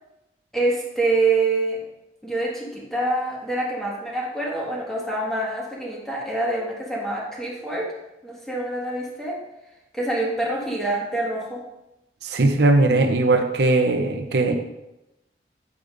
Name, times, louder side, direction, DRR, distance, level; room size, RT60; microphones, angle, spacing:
voice 1, 0.5-1.8 2.2-7.9 8.2-9.4 9.9-11.6, right 2 dB, ahead, -5 dB, 1.6 m, -26 dB
voice 2, 12.2-14.5, right 2 dB, 75° right, 5 dB, 0.7 m, -19 dB
8.3 x 8.3 x 2.6 m, 0.91 s
head